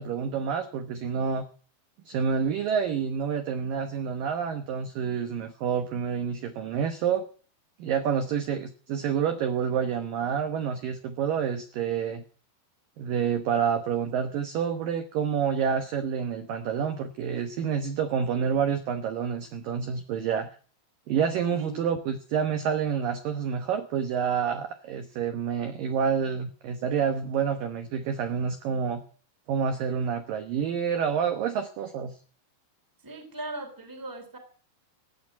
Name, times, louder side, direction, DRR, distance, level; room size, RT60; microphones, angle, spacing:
voice 1, 0.0-1.5 2.1-7.2 7.8-12.2 13.0-20.5 21.1-29.0 29.5-32.2, right 7 dB, 70° right, 7 dB, 2.2 m, -28 dB
voice 2, 21.5-21.9 33.0-34.4, right 2 dB, 5° right, 5 dB, 2.2 m, -39 dB
16.0 x 8.8 x 8.1 m, 0.41 s
omnidirectional pair, 5.4 m